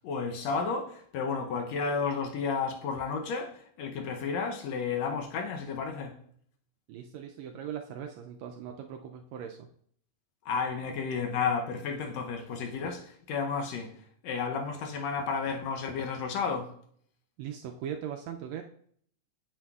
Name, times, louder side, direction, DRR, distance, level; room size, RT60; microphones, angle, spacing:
voice 1, 0.0-6.2 10.5-13.9 14.2-16.7, left 5 dB, 70° left, 1.7 m, -32 dB
voice 2, 6.9-9.7 17.4-18.6, right 9 dB, 85° right, 1.5 m, -39 dB
8.7 x 7.7 x 2.3 m
omnidirectional pair, 3.6 m